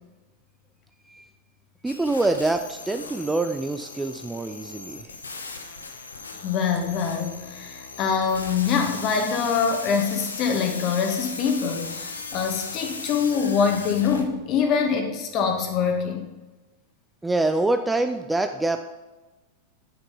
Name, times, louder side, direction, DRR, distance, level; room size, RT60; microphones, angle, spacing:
voice 1, 1.8-5.1 17.2-18.8, right 2 dB, 10° right, 8 dB, 0.5 m, -25 dB
sound 1, 1.9-14.2, left 4 dB, 75° left, 1.3 m, -38 dB
voice 2, 6.4-16.3, left 6 dB, 35° left, 4 dB, 2.0 m, -24 dB
9.7 x 9.0 x 5.2 m, 1.2 s
figure-of-eight pair, 90°, 0 cm